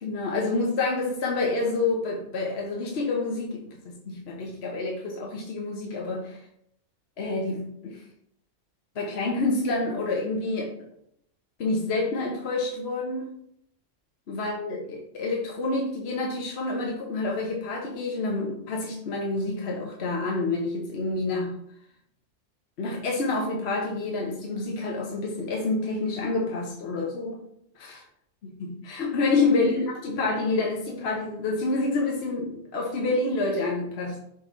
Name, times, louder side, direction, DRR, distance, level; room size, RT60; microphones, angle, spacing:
voice 1, 0.0-6.4 7.2-8.0 8.9-10.7 11.6-13.3 14.3-21.6 22.8-27.4 27.8-28.0 28.4-34.2, left 3 dB, 60° left, 0 dB, 1.1 m, -28 dB
6.1 x 3.1 x 5.0 m, 0.72 s
omnidirectional pair, 1.3 m